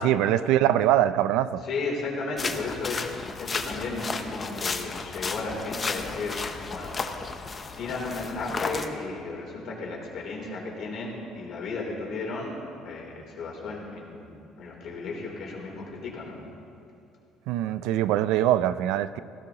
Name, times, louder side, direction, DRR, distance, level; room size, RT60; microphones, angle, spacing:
voice 1, 0.0-1.6 17.5-19.2, right 12 dB, 85° right, 14 dB, 0.4 m, -23 dB
voice 2, 1.6-7.0 7.8-12.5 12.8-14.3 14.6-16.4, left 3 dB, 50° left, -2 dB, 3.3 m, -34 dB
sound 1, 2.4-8.9, left 4 dB, 20° left, 0.7 m, -33 dB
18.5 x 16.0 x 3.0 m, 2.6 s
cardioid pair, 160°, 0 cm